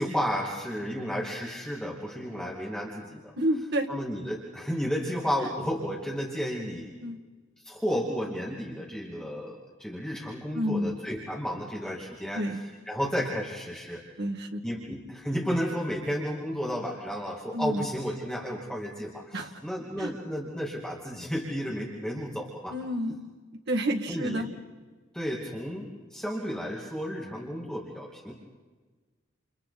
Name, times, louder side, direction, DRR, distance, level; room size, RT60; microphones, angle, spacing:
voice 1, 0.0-3.3 3.9-6.9 7.6-14.0 14.6-22.8 24.1-24.4 25.1-28.3, equal, 5° left, -3 dB, 2.4 m, -32 dB
voice 2, 3.4-3.9 5.4-5.5 7.0-7.2 10.5-10.9 12.4-12.6 14.2-14.6 17.5-17.9 19.3-19.5 20.0-20.1 22.7-23.1 23.7-24.5, equal, 55° right, 4 dB, 2.0 m, -29 dB
29.5 x 29.0 x 4.2 m, 1.4 s
head